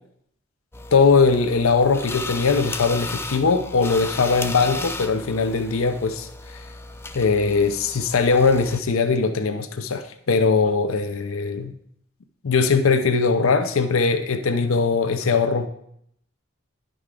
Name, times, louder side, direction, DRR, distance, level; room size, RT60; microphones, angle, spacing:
sound 1, 0.7-8.8, left 3 dB, 10° left, 0.3 m, -35 dB
voice 1, 0.9-6.6 7.1-11.7 12.4-15.7, left 4 dB, 80° left, 9 dB, 0.6 m, -20 dB
11.0 x 5.0 x 3.7 m, 0.70 s
head